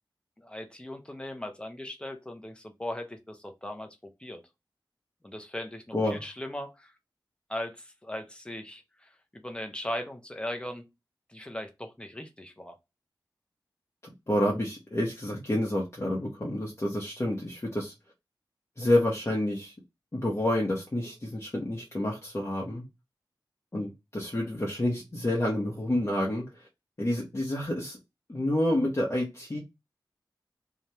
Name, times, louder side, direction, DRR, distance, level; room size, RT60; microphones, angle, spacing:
voice 1, 0.4-4.4 5.2-6.9 7.5-10.8 11.3-12.8, left 1 dB, 10° left, 0.7 m, -39 dB
voice 2, 14.3-17.9 18.8-19.7 20.1-22.8 23.7-26.7 27.0-28.0 28.3-29.6, left 1 dB, 35° left, 0.9 m, -29 dB
2.8 x 2.4 x 3.2 m
wide cardioid pair, 60°, 8 cm